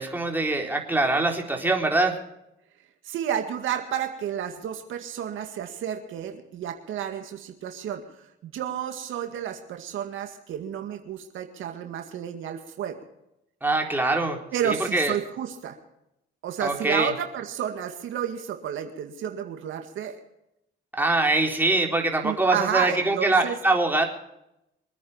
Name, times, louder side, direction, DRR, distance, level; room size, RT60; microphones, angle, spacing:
voice 1, 0.0-2.1 13.6-14.4 14.6-15.1 16.6-17.1 20.9-24.0, right 2 dB, 10° right, 1 dB, 3.9 m, -23 dB
voice 2, 3.0-13.0 14.5-15.8 16.4-20.2 22.2-23.6, right 9 dB, 80° right, 5 dB, 2.1 m, -31 dB
24.5 x 9.6 x 5.6 m, 0.83 s
cardioid pair, 90°, 20 cm